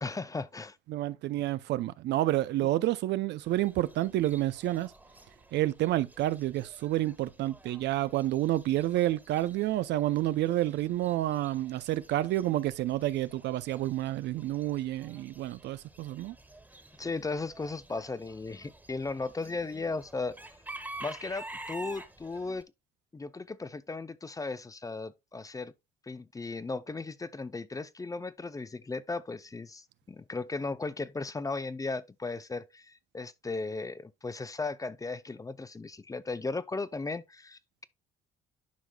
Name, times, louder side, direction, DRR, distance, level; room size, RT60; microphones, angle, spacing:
voice 1, 0.0-0.8 17.0-20.4 21.0-22.6 23.1-25.7 26.1-37.8, left 3 dB, 15° left, 0.6 m, -36 dB
voice 2, 0.9-4.9 5.5-16.3, right 15 dB, 65° right, 0.6 m, -29 dB
Chicken rooster / Bird, 3.4-22.6, right 2 dB, 10° right, 1.6 m, -50 dB
11.5 x 4.8 x 2.3 m
supercardioid pair, 70°, 19 cm